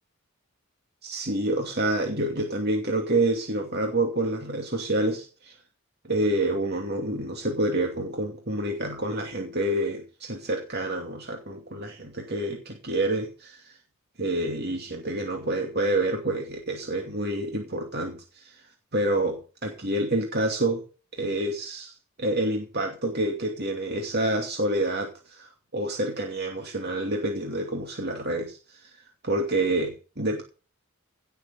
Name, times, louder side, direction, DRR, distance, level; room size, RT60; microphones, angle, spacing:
voice 1, 1.0-5.6 6.0-13.8 14.2-18.7 18.9-20.8 21.1-30.4, right 1 dB, 50° right, 2 dB, 2.6 m, -28 dB
18.0 x 7.0 x 7.0 m, 0.36 s
head